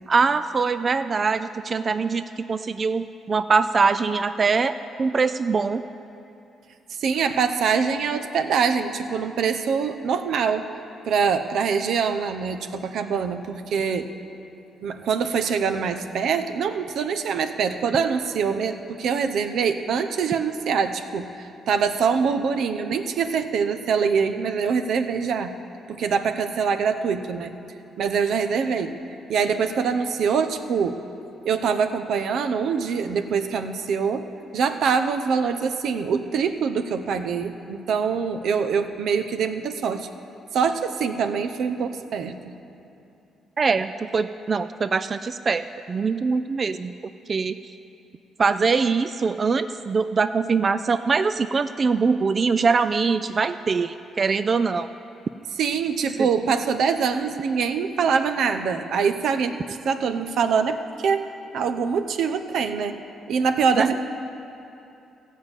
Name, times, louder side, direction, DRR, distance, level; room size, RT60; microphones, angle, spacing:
voice 1, 0.1-4.7 5.0-5.8 43.6-46.9 47.3-47.6 48.4-54.9 63.7-64.0, right 4 dB, 40° right, 11 dB, 0.3 m, -23 dB
voice 2, 7.0-10.7 11.0-14.1 14.8-25.5 25.9-27.6 28.0-29.0 29.3-31.0 31.4-40.1 40.5-42.5 55.6-61.3 61.5-63.0 63.3-64.0, right 6 dB, 70° right, 8 dB, 0.7 m, -24 dB
15.5 x 5.5 x 8.1 m, 2.8 s
cardioid pair, 90°, 0 cm